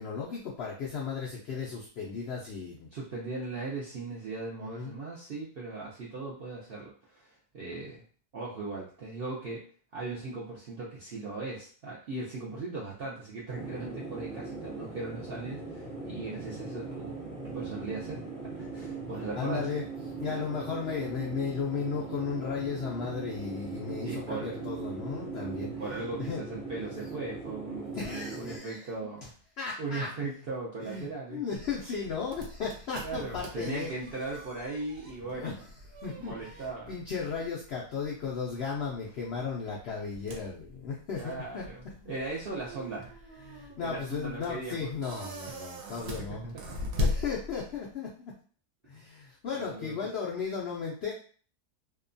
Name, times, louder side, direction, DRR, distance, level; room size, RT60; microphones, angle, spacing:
voice 1, 0.0-2.9 4.6-5.0 19.3-19.8 20.2-25.8 26.2-26.5 27.9-28.9 29.6-30.1 30.8-33.9 35.3-35.6 36.0-41.7 42.0-42.1 43.4-48.3 48.8-51.1, left 5 dB, 85° left, -3 dB, 0.5 m, -35 dB
voice 2, 2.9-8.0 8.3-9.6 9.9-17.2 17.4-19.7 24.0-24.6 25.8-29.3 29.8-31.4 33.0-35.5 36.0-36.9 41.1-43.1 43.8-44.9 49.5-50.0, right 3 dB, 70° right, -6 dB, 0.5 m, -38 dB
sound 1, 13.5-28.6, right 3 dB, 50° right, 1.1 m, -40 dB
sound 2, 31.6-47.9, left 2 dB, 85° right, 1.1 m, -40 dB
2.7 x 2.2 x 2.5 m, 0.43 s
omnidirectional pair, 1.7 m